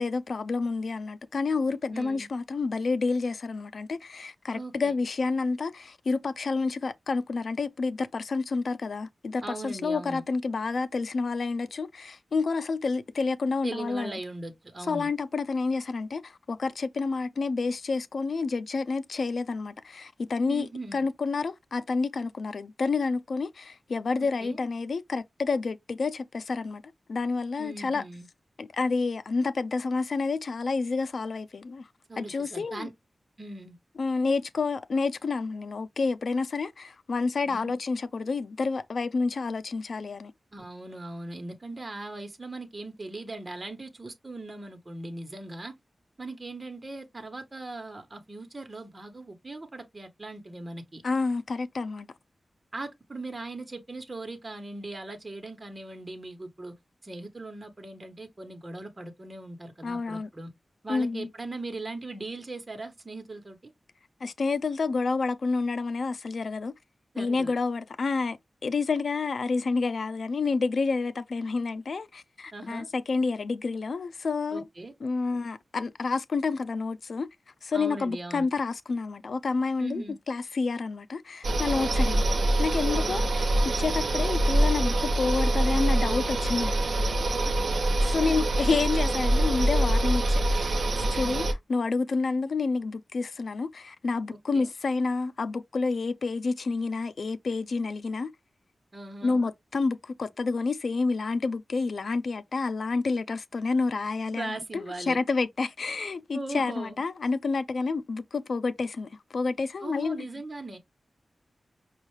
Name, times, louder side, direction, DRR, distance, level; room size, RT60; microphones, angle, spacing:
voice 1, 0.0-14.1 14.9-26.8 27.1-28.0 28.6-31.9 32.2-32.9 34.0-40.3 51.0-52.1 59.8-60.3 60.9-61.3 64.2-66.7 67.2-74.6 75.0-77.3 77.6-86.8 88.0-98.3 99.2-110.3, left 4 dB, 75° left, 0.5 m, -29 dB
voice 2, 1.9-2.3 4.5-4.9 9.4-10.2 13.6-15.1 20.5-21.0 24.2-24.6 27.6-28.3 32.1-32.9 33.4-33.8 37.5-37.7 40.5-45.7 46.2-51.0 52.7-56.7 57.0-60.5 60.8-63.7 67.1-67.5 72.5-72.9 74.5-74.9 77.7-78.5 79.8-80.2 81.8-82.1 82.9-83.3 87.2-88.7 91.1-91.4 94.5-94.7 98.9-99.4 104.3-105.2 106.3-107.0 109.8-110.8, right 2 dB, 35° right, 1.1 m, -39 dB
sound 1, 81.4-91.5, right 1 dB, 70° right, 0.7 m, -25 dB
5.4 x 2.4 x 3.2 m
cardioid pair, 65°, 0 cm